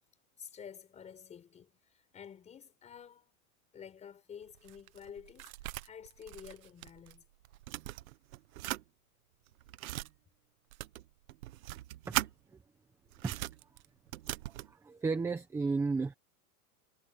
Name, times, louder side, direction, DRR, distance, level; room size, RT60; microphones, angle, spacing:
voice 1, 0.4-3.3 3.7-7.2, left 8 dB, 15° left, 4.5 m, -50 dB
sound 1, 4.4-7.2 7.4-8.8 9.5-10.1 10.7-12.3 13.1-14.7, right 16 dB, 65° right, 1.3 m, -40 dB
voice 2, 14.7-16.1, right 4 dB, 5° right, 1.1 m, -33 dB
supercardioid pair, 175°, 45 cm